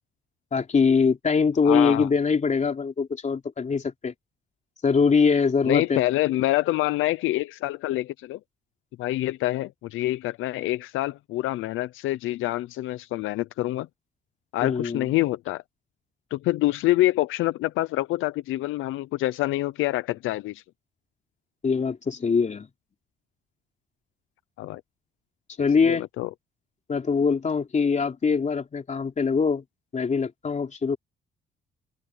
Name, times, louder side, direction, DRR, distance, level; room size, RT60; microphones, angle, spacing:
voice 1, 0.5-4.1 4.8-6.0 14.6-15.1 21.6-22.7 25.6-26.1 26.9-29.6 29.9-31.0, left 5 dB, 35° left, 3.5 m, -23 dB
voice 2, 1.6-2.1 5.6-8.4 9.0-13.9 14.5-15.6 16.3-20.6 24.6-24.8 25.9-26.3, left 16 dB, 90° left, 0.6 m, -26 dB
open air
cardioid pair, 90°, 20 cm